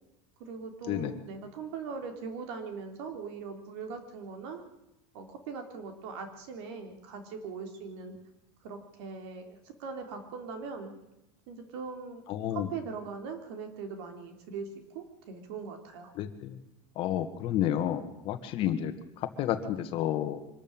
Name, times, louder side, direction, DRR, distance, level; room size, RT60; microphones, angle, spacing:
voice 1, 0.4-4.6 5.1-8.2 8.6-10.9 11.5-12.2 12.5-16.1, right 5 dB, 70° right, 5 dB, 3.6 m, -40 dB
voice 2, 12.3-12.7 16.2-16.6 17.0-20.4, left 11 dB, 40° left, 9 dB, 1.7 m, -31 dB
24.5 x 13.5 x 9.0 m, 0.91 s
cardioid pair, 175°, 14 cm